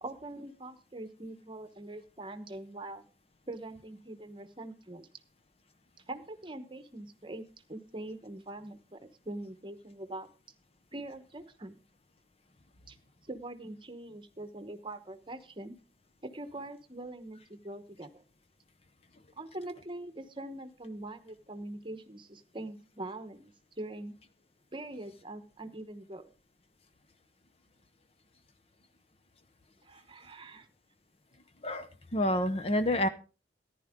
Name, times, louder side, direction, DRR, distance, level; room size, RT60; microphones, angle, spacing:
voice 1, 0.0-3.0 3.5-5.1 6.1-9.0 9.2-10.3 10.9-11.7 12.9-13.0 13.3-15.7 16.2-18.2 19.3-24.1 24.7-26.3 29.8-30.7, right 2 dB, 25° right, 9 dB, 1.0 m, -43 dB
voice 2, 31.6-33.1, left 1 dB, 35° left, 11 dB, 0.7 m, -28 dB
14.5 x 10.5 x 3.6 m, 0.35 s
head